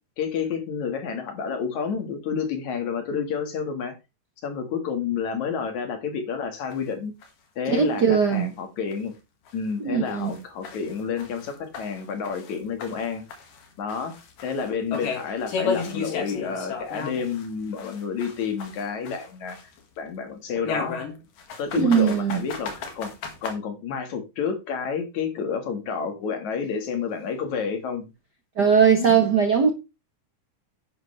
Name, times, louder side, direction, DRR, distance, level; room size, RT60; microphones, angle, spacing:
voice 1, 0.2-3.9 4.4-7.1 7.6-9.1 9.5-13.2 13.8-14.1 14.4-19.6 20.0-21.0 21.6-23.1 23.4-28.1 28.9-29.2, left 6 dB, 65° left, 3.1 m, -30 dB
sound 1, 6.7-6.8 7.2-7.3 7.8-7.9 8.3-8.4 8.9-9.0 9.5-9.6 10.1-12.6 12.8-17.5 17.8-19.8 20.6-23.5, left 5 dB, 85° left, 3.6 m, -34 dB
voice 2, 7.7-8.5 9.8-10.3 21.7-22.4 28.6-29.7, right 6 dB, 50° right, 1.2 m, -19 dB
11.0 x 9.1 x 3.3 m
omnidirectional pair, 3.7 m